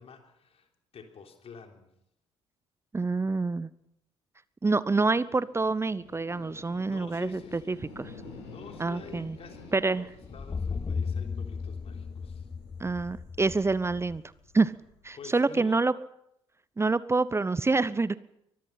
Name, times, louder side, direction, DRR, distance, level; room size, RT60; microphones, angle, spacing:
voice 1, 0.0-1.9 6.9-7.9 8.5-10.1 10.3-12.5 15.2-15.8, left 6 dB, 45° left, 4 dB, 3.6 m, -48 dB
voice 2, 2.9-3.7 4.6-7.4 7.7-8.1 8.8-9.3 9.7-10.0 12.8-14.2 14.5-14.7 15.0-15.9 16.8-18.2, right 3 dB, 20° right, 19 dB, 0.7 m, -26 dB
sound 1, 4.8-15.2, left 3 dB, 70° left, 7.4 m, -50 dB
sound 2, 10.2-14.2, left 5 dB, 25° left, 0.7 m, -35 dB
24.0 x 20.0 x 5.8 m, 0.80 s
figure-of-eight pair, 45°, 14 cm